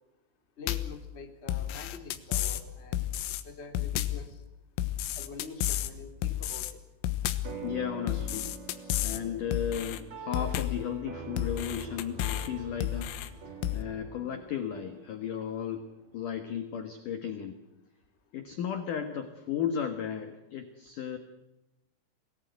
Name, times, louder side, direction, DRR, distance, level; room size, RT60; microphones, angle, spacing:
voice 1, 0.6-3.1 3.4-4.4 5.1-6.7, left 4 dB, 20° left, 5 dB, 1.8 m, -45 dB
sound 1, 0.7-1.0 1.5-2.6 2.9-3.4 3.8-4.3 4.8-5.9 6.2-6.7 7.0-7.6 8.1-9.2 9.5-10.0 10.3-10.9 11.4-12.5 12.8-13.3 13.6-13.8, left 12 dB, 85° left, 3.8 m, -31 dB
sound 2, 7.4-16.2, right 3 dB, 45° right, 3.7 m, -45 dB
voice 2, 7.6-8.5 9.0-15.9 16.1-17.6 18.3-21.2, left 8 dB, 70° left, 8 dB, 2.0 m, -35 dB
24.5 x 18.5 x 9.5 m, 0.96 s
omnidirectional pair, 5.9 m